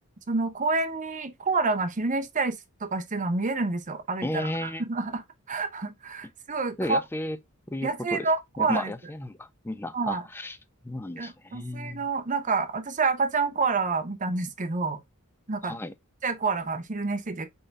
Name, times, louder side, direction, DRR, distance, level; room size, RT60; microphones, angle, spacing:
voice 1, 0.3-7.0 7.8-8.9 9.9-10.2 11.2-15.0 15.5-15.8 16.2-17.5, right 4 dB, 35° right, 0.8 m, -28 dB
voice 2, 4.2-4.8 6.8-7.4 7.7-8.3 8.6-10.6 10.8-12.1 15.6-15.9, left 1 dB, 10° left, 0.4 m, -33 dB
4.0 x 3.8 x 3.3 m
head